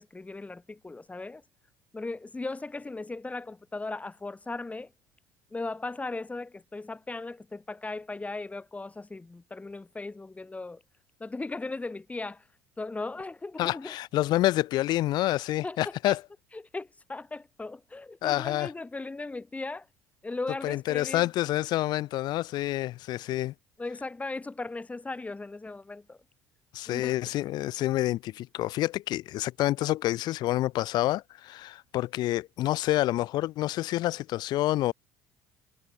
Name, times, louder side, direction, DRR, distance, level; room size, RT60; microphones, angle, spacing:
voice 1, 0.0-1.4 1.9-4.9 5.5-10.8 11.2-12.4 12.8-13.9 15.6-16.2 16.5-19.9 20.2-21.2 23.8-26.2 26.9-27.2, left 3 dB, 15° left, 3.0 m, -37 dB
voice 2, 13.6-16.2 18.2-18.7 20.6-23.5 26.7-34.9, left 15 dB, 55° left, 0.8 m, -28 dB
hypercardioid pair, 60°, 9 cm